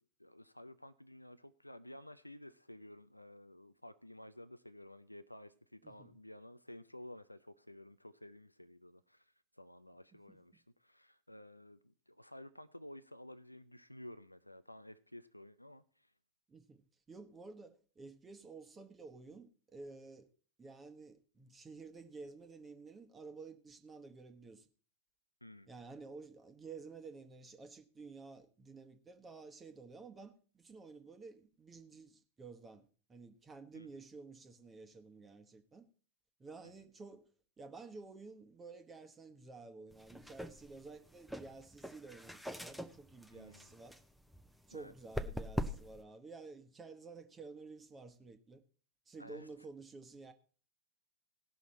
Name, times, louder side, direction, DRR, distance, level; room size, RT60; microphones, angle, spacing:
voice 1, 0.0-16.1 25.4-25.7 33.7-33.9 36.6-36.9 43.3-43.7 44.7-44.9 49.2-49.5, left 1 dB, 85° left, 0.4 m, -53 dB
voice 2, 16.5-20.3 20.6-24.7 25.7-35.9 36.4-37.3 37.6-44.0 44.7-48.6 49.1-50.3, right 4 dB, 15° right, 1.2 m, -52 dB
sound 1, 39.9-46.0, equal, ahead, 0.8 m, -44 dB
17.5 x 6.3 x 4.2 m
figure-of-eight pair, 90°, 0 cm